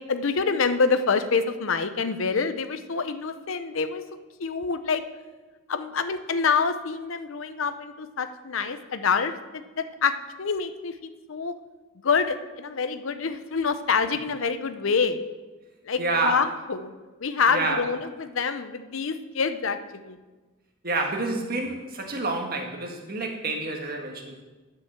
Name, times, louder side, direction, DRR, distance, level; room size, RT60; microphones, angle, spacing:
voice 1, 0.0-4.0 4.4-5.0 5.7-11.5 12.0-15.2 15.8-16.9 17.2-20.2, left 5 dB, 70° left, 10 dB, 0.6 m, -26 dB
voice 2, 16.0-16.4 17.5-17.9 20.8-24.4, right 3 dB, 45° right, 2 dB, 1.6 m, -28 dB
10.0 x 5.7 x 7.3 m, 1.2 s
head